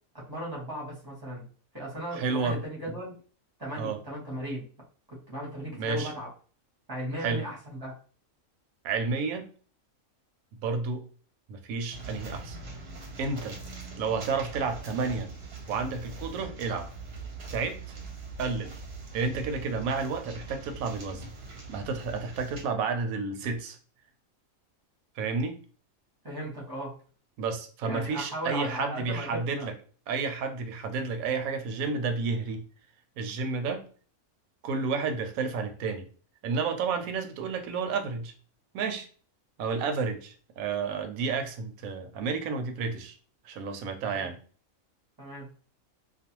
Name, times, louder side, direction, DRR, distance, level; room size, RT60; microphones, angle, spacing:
voice 1, 0.1-1.4 1.7-3.1 3.6-4.6 5.1-6.3 6.9-7.9 26.2-26.9 27.8-29.7 44.1-44.3 45.2-45.5, right 1 dB, 20° right, -4 dB, 0.8 m, -37 dB
voice 2, 2.1-2.6 3.8-4.0 5.7-6.1 7.2-7.4 8.8-9.5 10.6-11.0 11.5-12.6 13.2-13.6 14.0-15.3 15.7-16.9 17.5-17.9 18.4-18.8 19.1-21.2 21.7-23.8 25.2-25.6 27.4-29.7 30.1-32.6 33.2-33.8 34.6-36.1 36.4-38.3 38.7-39.1 39.6-43.2 43.4-44.4, right 4 dB, 85° right, 6 dB, 1.0 m, -31 dB
sound 1, 11.9-22.6, right 3 dB, 55° right, 0.8 m, -42 dB
2.4 x 2.3 x 2.9 m, 0.42 s
omnidirectional pair, 1.4 m